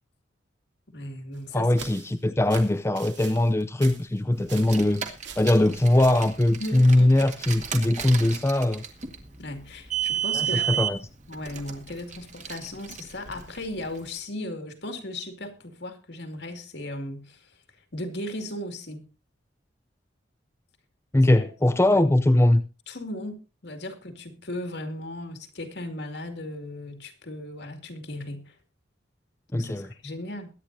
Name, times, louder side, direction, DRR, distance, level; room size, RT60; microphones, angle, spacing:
voice 1, 0.9-1.9 6.6-7.1 9.4-10.8 11.3-17.5 17.9-19.1 21.4-21.5 21.9-22.0 22.9-28.5 29.5-30.5, left 1 dB, 65° left, 2.3 m, -36 dB
sound 1, 1.3-4.9 5.2-6.3, right 6 dB, 70° right, 2.7 m, -43 dB
voice 2, 1.5-5.0 5.4-8.8 10.3-11.0 21.1-22.6 29.5-29.9, left 1 dB, 15° left, 0.5 m, -21 dB
Car, 4.5-14.0, right 9 dB, 40° right, 1.8 m, -33 dB
22.5 x 9.7 x 2.7 m
head